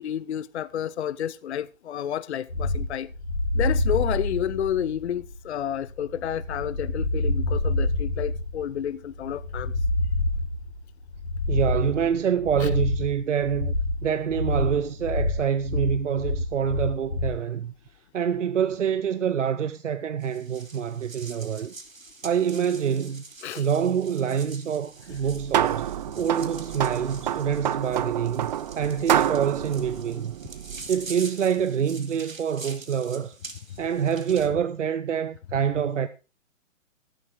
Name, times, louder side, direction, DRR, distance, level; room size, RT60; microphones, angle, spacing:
voice 1, 0.0-3.1 3.5-9.7 12.6-12.7 23.4-23.7 33.7-33.8, left 10 dB, 55° left, 0.6 m, -30 dB
sound 1, 2.5-17.4, left 2 dB, 75° left, 5.5 m, -27 dB
voice 2, 11.5-13.7 14.0-17.7 18.1-21.7 22.2-23.2 23.5-25.9 26.2-30.4 30.9-33.3 33.8-36.1, right 8 dB, 65° right, 0.8 m, -26 dB
sound 2, 20.2-34.5, right 3 dB, 85° right, 2.2 m, -45 dB
sound 3, 25.1-31.0, right 11 dB, 35° right, 0.6 m, -28 dB
13.0 x 11.5 x 3.7 m
figure-of-eight pair, 125°, 39 cm